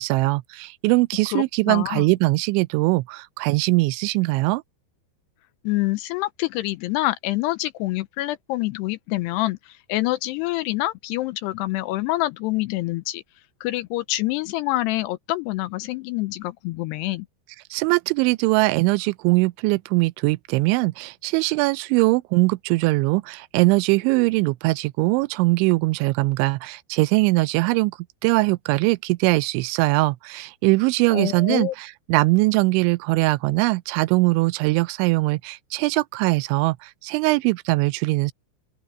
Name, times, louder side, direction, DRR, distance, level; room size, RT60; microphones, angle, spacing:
voice 1, 0.0-4.6 17.7-38.3, right 23 dB, 85° right, 2.9 m, -21 dB
voice 2, 1.3-2.0 5.6-13.2 13.6-17.3 31.1-31.7, left 17 dB, 85° left, 2.4 m, -26 dB
open air
omnidirectional pair, 5.4 m